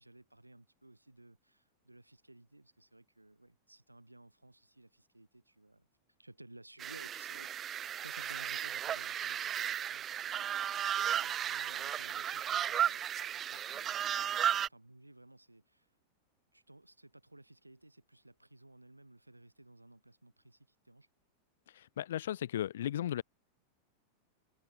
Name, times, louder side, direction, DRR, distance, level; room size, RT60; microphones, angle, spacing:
voice 1, 0.0-5.9 6.2-7.5 8.0-13.1 13.3-14.1 14.7-15.9 16.5-21.1, right 1 dB, 85° right, 5.0 m, -57 dB
sound 1, 6.8-14.7, right 10 dB, 25° right, 0.5 m, -35 dB
voice 2, 21.7-23.2, left 11 dB, 60° left, 0.4 m, -35 dB
figure-of-eight pair, 90°, 0 cm